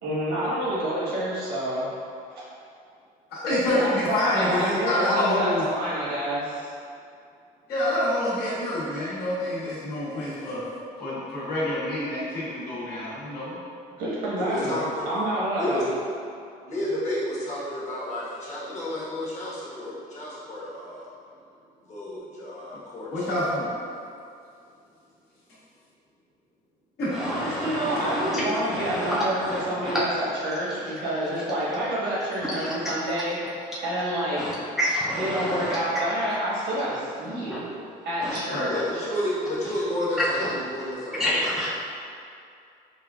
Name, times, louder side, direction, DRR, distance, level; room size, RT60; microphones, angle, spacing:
voice 1, 0.0-1.9 2.3-2.4 3.7-6.7 14.0-14.8 15.0-15.9 27.2-33.4 33.8-34.4 35.2-37.8 38.0-39.0, right 1 dB, 80° right, -8 dB, 1.4 m, -28 dB
voice 2, 3.3-5.6 7.7-10.6 11.0-13.6 23.1-23.7 27.0-27.1 38.5-38.8, left 1 dB, 70° left, -9 dB, 1.4 m, -27 dB
voice 3, 14.4-15.3 15.6-15.8 16.7-21.1 21.8-23.4 38.6-41.5, left 1 dB, 45° left, -8 dB, 1.2 m, -31 dB
voice 4, 27.1-27.8 28.3-28.4 28.7-30.0 32.5-32.7 34.4-35.8 37.5-37.6 38.2-38.4 40.4-40.5 41.2-41.7, equal, ahead, -7 dB, 0.5 m, -28 dB
4.7 x 2.4 x 2.4 m, 2.4 s
cardioid pair, 110°, 17 cm